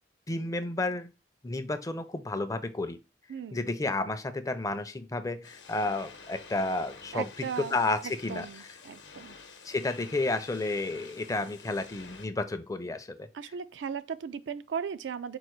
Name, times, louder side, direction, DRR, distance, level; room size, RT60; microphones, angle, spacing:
voice 1, 0.3-1.1 1.4-3.0 3.5-8.5 9.6-13.3, left 2 dB, 20° left, 0.4 m, -31 dB
voice 2, 3.3-3.7 7.1-7.8 8.0-9.4 13.3-15.4, right 7 dB, 85° right, 0.4 m, -37 dB
sound 1, 5.4-12.3, left 4 dB, 80° left, 0.8 m, -49 dB
4.7 x 2.4 x 4.4 m
head